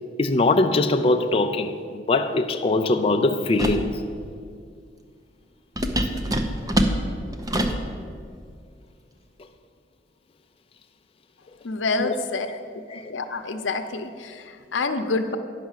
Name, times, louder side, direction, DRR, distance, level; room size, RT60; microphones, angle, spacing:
voice 1, 0.2-4.0 12.0-12.1 12.9-13.1, left 2 dB, 30° left, 0.4 m, -22 dB
sound 1, 3.6-3.9 5.8-7.9, equal, 20° right, 0.7 m, -24 dB
voice 2, 11.6-12.5 12.9-15.4, left 3 dB, 85° left, 0.8 m, -27 dB
10.5 x 5.7 x 7.4 m
head